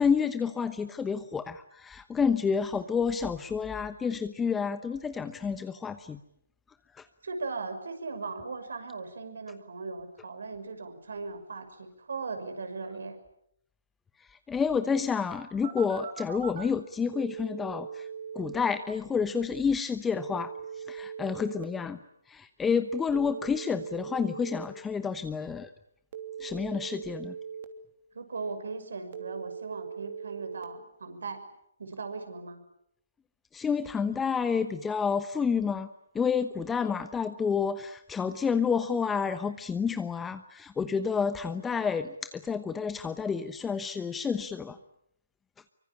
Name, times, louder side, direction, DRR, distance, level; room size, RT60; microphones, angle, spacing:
voice 1, 0.0-6.2 6.9-7.1 14.2-18.1 18.3-22.0 22.3-25.7 26.4-27.3 33.5-35.9 36.1-44.8, left 6 dB, 10° left, 11 dB, 1.0 m, -29 dB
voice 2, 7.2-13.2 28.1-31.4 31.8-32.6, right 4 dB, 75° right, 8 dB, 6.3 m, -38 dB
Telephone, 15.6-16.6 17.1-18.6 20.1-21.6 23.1-24.6 26.1-27.6 29.1-30.6, right 7 dB, 50° right, 3.0 m, -40 dB
24.5 x 24.5 x 8.8 m, 0.76 s
figure-of-eight pair, 140°, 0 cm